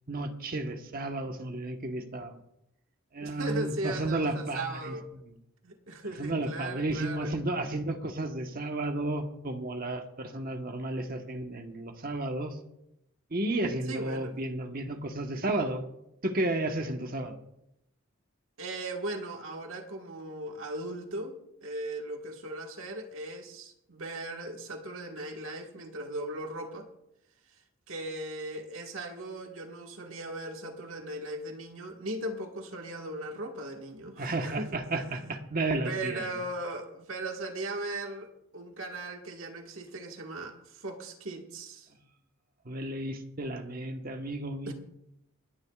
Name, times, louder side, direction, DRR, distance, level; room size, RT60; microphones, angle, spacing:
voice 1, 0.1-2.4 3.1-4.9 6.2-12.6 13.3-15.8 16.2-17.4 34.2-36.3 42.6-44.7, right 2 dB, 45° right, 5 dB, 1.2 m, -32 dB
voice 2, 3.2-5.1 5.6-7.3 13.9-14.3 18.6-26.9 27.9-35.3 35.8-41.9 44.6-44.7, right 1 dB, 75° right, 3 dB, 1.6 m, -38 dB
27.5 x 10.5 x 2.4 m, 0.82 s
head